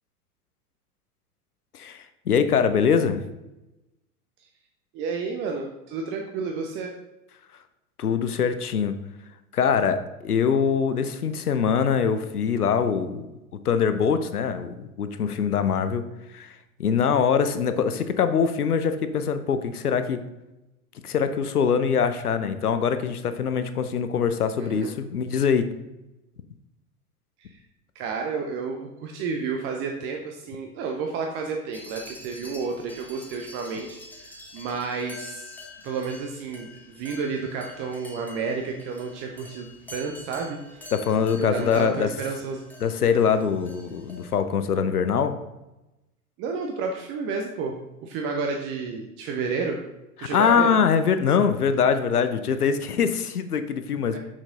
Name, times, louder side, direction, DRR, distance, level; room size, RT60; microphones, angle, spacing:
voice 1, 1.7-3.2 8.0-8.9 9.5-13.3 13.6-20.2 21.0-25.7 40.9-42.1 42.8-45.4 50.3-54.2, left 6 dB, 80° left, 10 dB, 0.7 m, -23 dB
voice 2, 4.9-6.9 24.6-24.9 27.4-27.6 27.9-35.5 35.8-40.9 41.4-42.6 46.4-49.8 50.2-50.7 54.1-54.2, right 4 dB, 25° right, 2 dB, 0.6 m, -31 dB
sound 1, 31.7-44.3, left 2 dB, 5° left, 1.1 m, -46 dB
6.2 x 6.0 x 3.8 m, 0.97 s
figure-of-eight pair, 90°, 45 cm